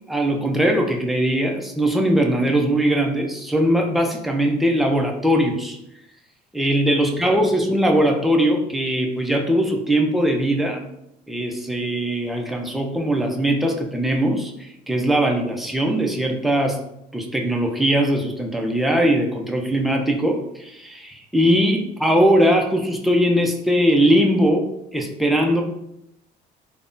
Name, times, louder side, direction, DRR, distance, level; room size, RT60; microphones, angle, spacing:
voice 1, 0.1-5.8 6.5-10.8 11.3-16.8 17.1-25.6, equal, ahead, 1 dB, 0.4 m, -20 dB
3.4 x 2.1 x 2.5 m, 0.81 s
cardioid pair, 110°, 17 cm